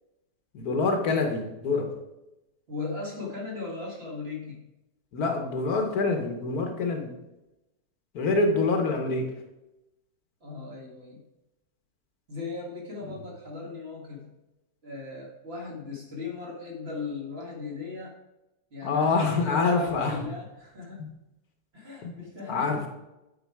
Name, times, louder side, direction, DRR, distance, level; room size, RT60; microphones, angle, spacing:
voice 1, 0.5-1.9 5.1-7.1 8.1-9.3 18.8-20.3 21.0-21.1 22.0-22.1 22.5-22.8, left 3 dB, 65° left, 4 dB, 1.4 m, -26 dB
voice 2, 2.7-4.6 10.4-11.2 12.3-14.3 14.8-18.1 18.7-21.0 21.7-22.9, left 4 dB, 40° right, -2 dB, 1.8 m, -38 dB
9.2 x 4.6 x 4.6 m, 0.96 s
omnidirectional pair, 1.7 m